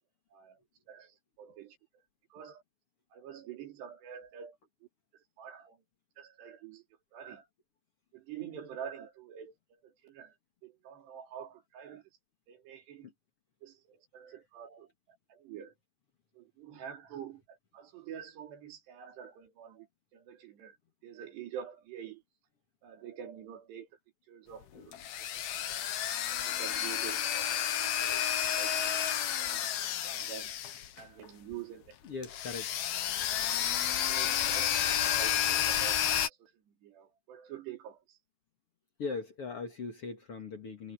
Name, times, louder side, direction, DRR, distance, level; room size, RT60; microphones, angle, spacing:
voice 1, 0.9-1.8 2.3-2.6 3.1-4.6 5.4-5.8 6.2-6.8 7.1-7.5 8.1-10.3 10.6-12.0 12.5-13.1 13.6-14.9 15.3-15.7 16.4-19.9 20.1-20.8 21.0-22.2 22.8-23.9 24.3-25.0 25.3-25.8 26.3-29.1 29.4-29.7 30.0-30.5 31.0-32.0 34.0-36.5 36.8-38.2, right 9 dB, 90° right, 5.2 m, -47 dB
sound 1, 24.6-31.2 31.5-31.6 32.2-36.3, left 10 dB, 70° left, 3.3 m, -31 dB
voice 2, 32.0-32.7 39.0-40.9, left 4 dB, 45° left, 2.2 m, -39 dB
omnidirectional pair, 4.7 m